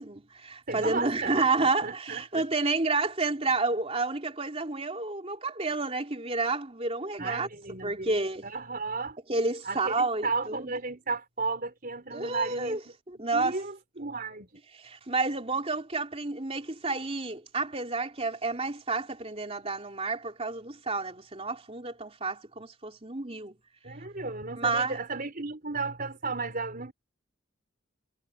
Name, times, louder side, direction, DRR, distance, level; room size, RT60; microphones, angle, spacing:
voice 1, 0.0-7.5 7.8-8.5 9.3-10.7 12.1-12.8 13.1-13.6 14.8-23.6 24.6-25.0, right 3 dB, 30° right, 3.3 m, -30 dB
voice 2, 0.7-2.4 7.2-8.1 8.4-9.2 9.6-12.8 13.1-14.6 23.8-26.9, right 3 dB, 45° right, 4.6 m, -34 dB
head